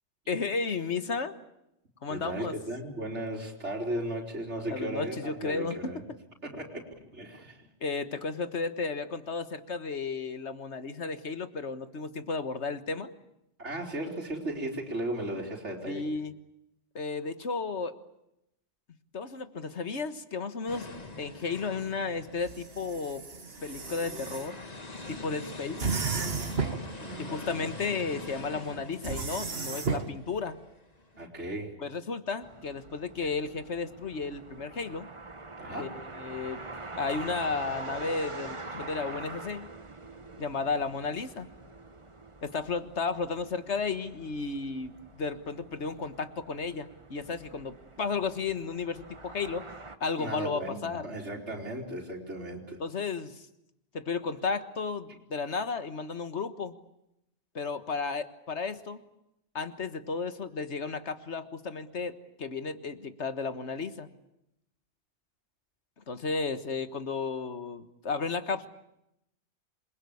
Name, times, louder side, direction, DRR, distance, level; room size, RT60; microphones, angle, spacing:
voice 1, 0.3-1.3 2.0-2.6 4.7-5.9 7.8-13.1 15.9-16.3 17.0-18.0 19.1-20.9 21.2-23.3 23.6-24.6 25.1-25.9 27.2-30.6 31.8-35.1 35.8-36.6 36.9-39.7 40.4-41.5 42.4-49.7 50.0-51.1 52.8-53.4 53.9-56.8 57.6-59.0 59.6-64.1 66.1-68.7, left 4 dB, 75° left, 11 dB, 1.8 m, -33 dB
voice 2, 2.1-6.0 6.4-7.7 13.6-16.0 26.6-27.7 31.2-31.8 35.6-35.9 50.2-52.8, right 1 dB, 80° right, -1 dB, 4.1 m, -36 dB
sound 1, 20.7-31.3, left 2 dB, 35° left, 2.1 m, -44 dB
sound 2, 22.4-24.5 25.8-26.9 29.0-30.1, right 4 dB, 60° right, 1.9 m, -33 dB
sound 3, 32.4-50.0, right 3 dB, 25° right, 1.4 m, -45 dB
28.0 x 22.0 x 8.5 m, 0.83 s
omnidirectional pair, 1.2 m